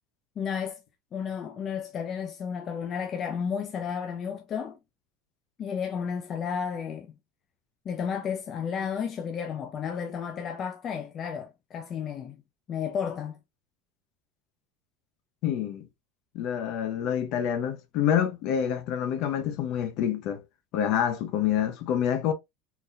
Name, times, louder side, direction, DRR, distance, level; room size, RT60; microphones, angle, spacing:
voice 1, 0.4-0.8 1.1-4.8 5.6-7.2 7.9-12.4 12.7-13.4, left 7 dB, 30° left, 0.4 m, -32 dB
voice 2, 15.4-15.9 16.3-20.4 20.7-22.3, left 9 dB, 50° left, 0.8 m, -27 dB
3.9 x 2.8 x 2.5 m
cardioid pair, 165°, 0 cm